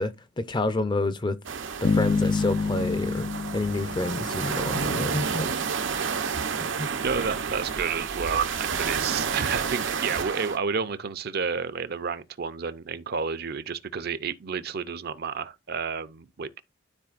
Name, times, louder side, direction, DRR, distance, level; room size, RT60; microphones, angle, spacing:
voice 1, 0.0-1.4 1.8-3.3 3.5-5.5 6.6-6.9, left 2 dB, 25° left, 0.6 m, -28 dB
sound 1, 1.4-10.6, right 6 dB, 85° right, 0.8 m, -30 dB
Bass guitar, 1.8-4.9, left 4 dB, 80° left, 0.6 m, -27 dB
voice 2, 6.6-16.6, right 6 dB, 55° right, 0.6 m, -30 dB
12.5 x 4.2 x 2.5 m
head